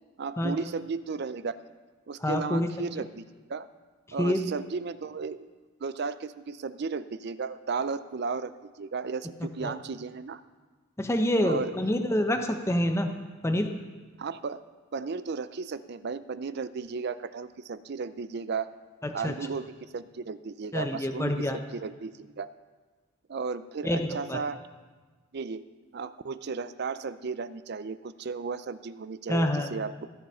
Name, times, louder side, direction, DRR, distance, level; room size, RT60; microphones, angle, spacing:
voice 1, 0.2-1.5 2.1-3.2 3.5-3.7 4.1-5.4 5.8-10.4 11.4-11.7 14.2-14.6 14.9-18.7 19.1-22.5 23.3-24.6 25.3-25.6 25.9-30.1, right 5 dB, 55° right, 14 dB, 0.5 m, -34 dB
voice 2, 2.2-2.7 4.2-4.4 9.6-9.7 11.0-13.1 13.4-13.7 19.0-19.3 20.7-21.6 23.8-24.4 29.3-29.7, left 1 dB, 15° left, 5 dB, 0.7 m, -27 dB
15.5 x 8.0 x 5.6 m, 1.4 s
head